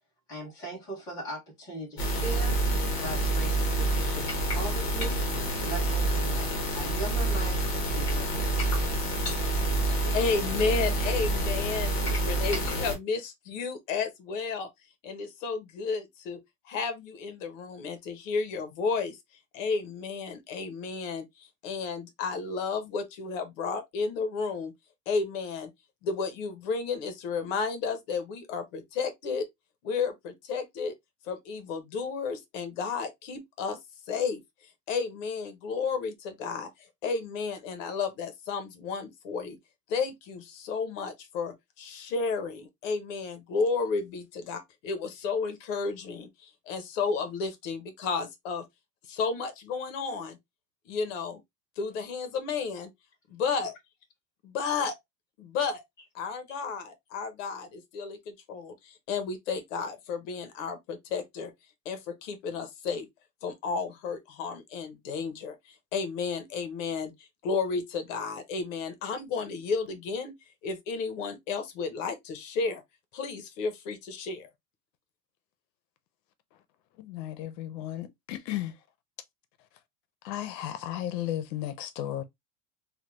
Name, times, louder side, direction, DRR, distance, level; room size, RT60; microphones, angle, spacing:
voice 1, 0.3-2.6 3.0-5.2 5.6-8.6, right 1 dB, 10° left, 0.4 m, -40 dB
sound 1, 2.0-13.0, right 1 dB, 30° left, 1.0 m, -27 dB
voice 2, 10.1-14.7 15.0-16.4 16.7-19.2 19.5-24.7 25.1-25.7 26.0-29.5 29.8-30.9 31.2-33.8 34.1-34.4 34.9-36.7 37.0-39.6 39.9-48.6 49.1-50.4 50.9-51.4 51.8-52.9 53.3-53.7 54.4-54.9 55.4-55.8 56.1-61.5 61.8-63.1 63.4-70.3 70.6-72.8 73.1-74.5, left 5 dB, 50° left, 0.8 m, -32 dB
voice 3, 77.0-78.7 80.2-82.2, left 12 dB, 80° left, 0.7 m, -34 dB
3.3 x 2.3 x 2.9 m
supercardioid pair, 180°, 49 cm